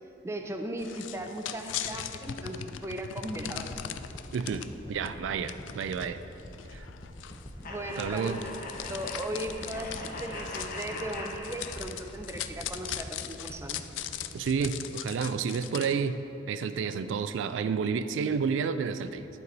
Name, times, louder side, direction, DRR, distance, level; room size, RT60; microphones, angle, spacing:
voice 1, 0.2-3.7 7.6-8.6 8.9-13.8, right 1 dB, 15° right, 4 dB, 0.4 m, -37 dB
sound 1, 0.8-4.7 5.0-5.1 5.5-15.9, left 10 dB, 80° left, 0.3 m, -40 dB
sound 2, 3.7-16.0 16.4-16.5, equal, 25° left, 0.7 m, -46 dB
voice 2, 4.3-6.2 6.7-6.9 8.0-8.4 14.3-19.3, right 6 dB, 85° right, 11 dB, 0.3 m, -30 dB
sound 3, 7.6-12.2, left 2 dB, 50° left, 0.9 m, -41 dB
10.5 x 4.7 x 4.0 m, 2.9 s
head